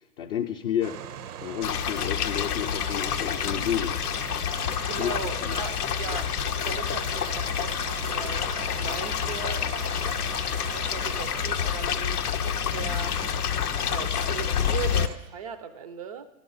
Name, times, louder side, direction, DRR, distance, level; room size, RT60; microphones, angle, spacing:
voice 1, 0.2-1.0 1.4-4.0 5.0-5.1 5.4-5.6, left 10 dB, 40° left, 2 dB, 0.5 m, -30 dB
sound 1, 0.8-15.2, right 9 dB, 80° right, 0.6 m, -40 dB
sound 2, 1.6-15.1, left 9 dB, 85° left, 0.7 m, -28 dB
voice 2, 4.5-8.5 8.8-10.1 10.4-13.2 13.8-16.3, right 7 dB, 30° right, 13 dB, 0.3 m, -39 dB
12.0 x 12.0 x 4.0 m, 1.0 s
hypercardioid pair, 125°, 45 cm